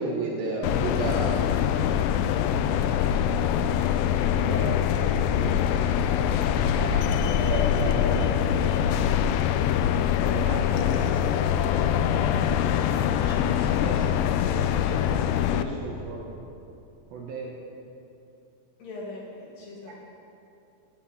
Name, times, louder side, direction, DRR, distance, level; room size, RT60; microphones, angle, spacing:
voice 1, 0.0-1.5 4.3-8.5 10.2-12.6 13.2-16.4 17.1-17.6 19.9-20.0, right 2 dB, 70° right, -1 dB, 2.4 m, -35 dB
sound 1, 0.6-15.6, left 9 dB, 85° left, 2.6 m, -24 dB
voice 2, 4.3-4.7 18.8-20.0, left 2 dB, 65° left, -3 dB, 2.3 m, -41 dB
9.8 x 8.5 x 8.5 m, 2.8 s
omnidirectional pair, 5.2 m